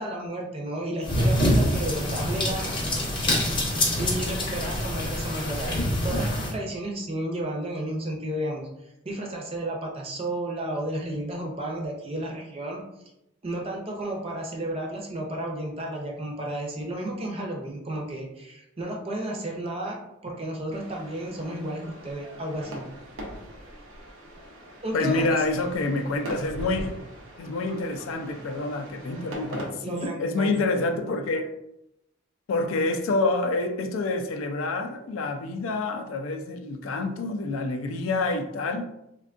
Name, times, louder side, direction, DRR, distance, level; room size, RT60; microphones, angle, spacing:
voice 1, 0.0-2.8 4.0-8.7 9.0-12.8 13.4-22.9 24.8-25.4 29.8-30.7, right 1 dB, 30° right, 0.5 m, -32 dB
sound 1, 1.0-6.5, left 1 dB, 25° left, 0.6 m, -25 dB
sound 2, 20.7-29.7, equal, 80° right, 0.7 m, -41 dB
voice 2, 24.9-27.0 27.4-31.5 32.5-38.9, left 2 dB, 80° left, 0.4 m, -27 dB
3.4 x 2.2 x 2.4 m
head